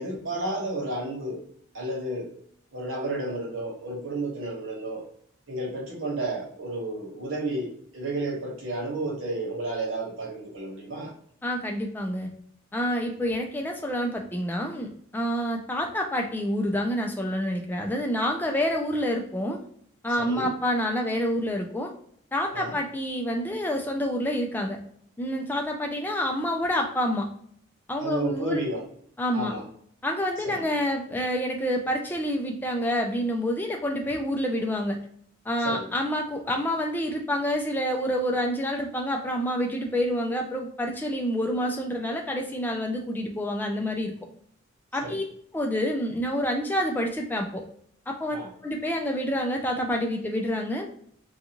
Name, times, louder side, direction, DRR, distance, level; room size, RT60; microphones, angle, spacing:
voice 1, 0.0-1.4 1.7-2.3 2.7-5.0 5.5-7.7 7.9-11.1 20.2-20.5 22.5-22.7 28.0-28.8 29.3-29.6 30.4-30.6 35.6-35.8 45.0-45.2 48.3-48.5, right 2 dB, 85° right, -3 dB, 1.1 m, -31 dB
voice 2, 11.4-12.3 12.7-19.6 20.0-21.9 22.3-24.8 25.2-27.3 27.9-28.6 29.2-29.5 30.0-35.0 35.5-44.1 44.9-45.2 45.5-47.6 48.1-48.4 48.6-50.9, equal, 10° left, 1 dB, 0.3 m, -28 dB
2.5 x 2.3 x 2.9 m, 0.64 s
head